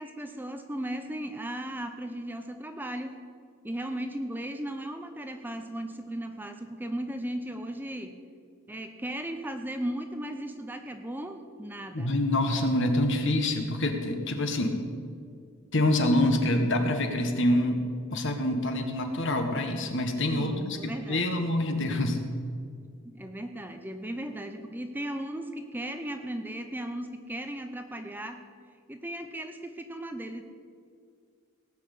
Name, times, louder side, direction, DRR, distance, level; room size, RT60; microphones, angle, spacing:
voice 1, 0.0-3.1 3.6-8.2 8.7-12.1 20.3-21.3 23.0-28.4 28.9-30.4, right 1 dB, 10° right, 6 dB, 0.6 m, -36 dB
voice 2, 11.9-14.8 15.7-17.8 18.1-22.2, left 1 dB, 55° left, 5 dB, 1.5 m, -26 dB
18.0 x 6.1 x 8.3 m, 2.3 s
head